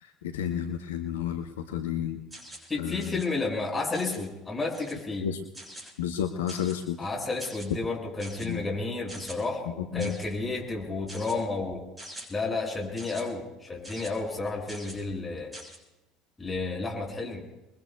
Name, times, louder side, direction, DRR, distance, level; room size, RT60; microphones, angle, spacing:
voice 1, 0.0-2.2 2.8-3.2 5.2-5.4 6.0-7.0 8.4-8.6 9.9-10.2, left 9 dB, 75° left, 6 dB, 1.0 m, -31 dB
sound 1, 2.3-2.7 3.0-3.3 3.9-4.3 4.7-5.0 5.5-5.9 6.5-6.8 7.4-7.7 8.2-8.5 9.1-9.4 10.0-10.3 11.1-11.4 12.0-12.3 13.0-13.2 13.8-14.1 14.7-15.0 15.5-15.8, right 1 dB, 10° right, 6.4 m, -44 dB
voice 2, 2.7-5.3 7.0-11.8 12.3-15.5 16.4-17.4, left 3 dB, 20° left, -1 dB, 6.4 m, -31 dB
28.0 x 22.0 x 2.3 m, 1.0 s
figure-of-eight pair, 65°, 0 cm